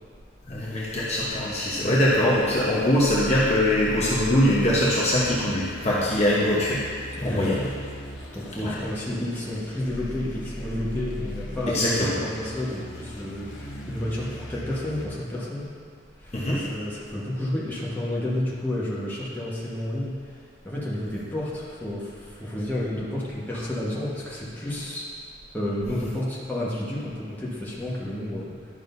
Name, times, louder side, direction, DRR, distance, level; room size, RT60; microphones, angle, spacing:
voice 1, 0.5-6.9 7.2-7.6 8.6-8.7 11.7-12.2 16.3-16.7, left 1 dB, 35° left, -7 dB, 1.0 m, -22 dB
sound 1, 1.3-15.0, equal, 80° left, 1.0 m, -38 dB
voice 2, 7.1-7.6 8.3-15.6 16.2-20.2 20.6-25.1 25.5-28.5, left 1 dB, 10° left, -7 dB, 1.3 m, -31 dB
11.0 x 6.3 x 2.7 m, 2.1 s
head